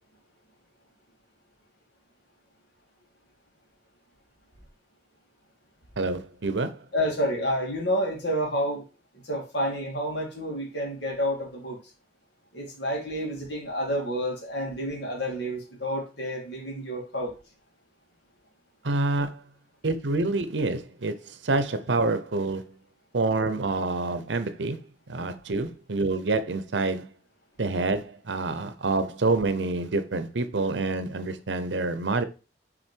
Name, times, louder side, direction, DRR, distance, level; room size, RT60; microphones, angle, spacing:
voice 1, 6.0-6.8 18.8-19.4 19.8-22.8 23.1-24.8 25.1-27.1 27.6-32.2, right 3 dB, 85° right, 0.8 m, -27 dB
voice 2, 6.9-8.8 9.2-11.8 12.5-17.3, equal, 65° left, 2.5 m, -29 dB
6.3 x 4.0 x 4.6 m
head